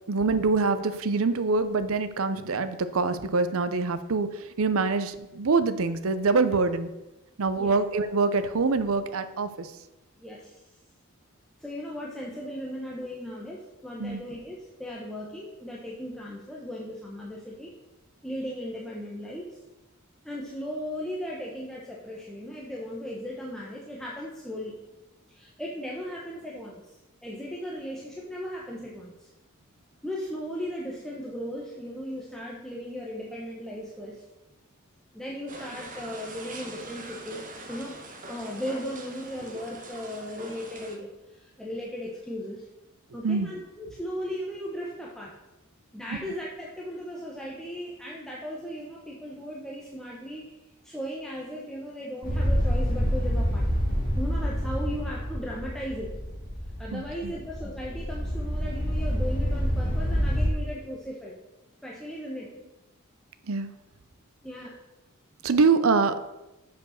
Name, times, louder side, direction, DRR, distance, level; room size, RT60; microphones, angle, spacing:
voice 1, 0.1-6.9 7.4-9.7 14.0-14.2 43.2-43.5 56.9-57.3 63.5-63.8 65.4-66.2, right 4 dB, 70° right, 11 dB, 0.6 m, -25 dB
voice 2, 10.2-10.6 11.6-17.7 18.2-19.6 20.2-24.7 25.3-27.0 27.2-29.3 30.0-34.2 35.1-38.0 38.3-42.7 43.1-45.4 45.9-50.5 50.8-53.7 54.2-56.2 56.8-61.4 61.8-62.5 64.4-64.8, equal, ahead, -4 dB, 1.0 m, -37 dB
sound 1, 35.5-41.0, right 2 dB, 40° right, 1.1 m, -43 dB
sound 2, 52.2-60.5, equal, 40° left, 2.0 m, -27 dB
7.0 x 5.2 x 6.4 m, 0.99 s
head